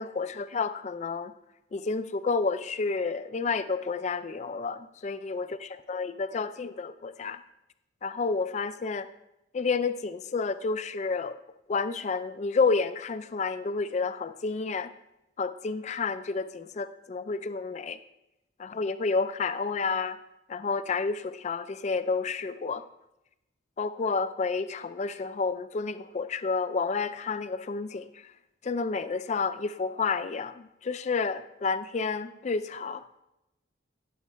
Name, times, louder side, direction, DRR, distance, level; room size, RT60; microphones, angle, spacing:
voice 1, 0.0-1.3 1.7-4.8 5.0-7.4 8.0-9.1 9.5-11.4 11.7-14.9 15.4-18.0 18.6-20.2 20.5-22.8 23.8-28.3 28.6-33.2, left 4 dB, 35° left, 12 dB, 0.3 m, -30 dB
17.5 x 7.2 x 2.2 m, 0.90 s
head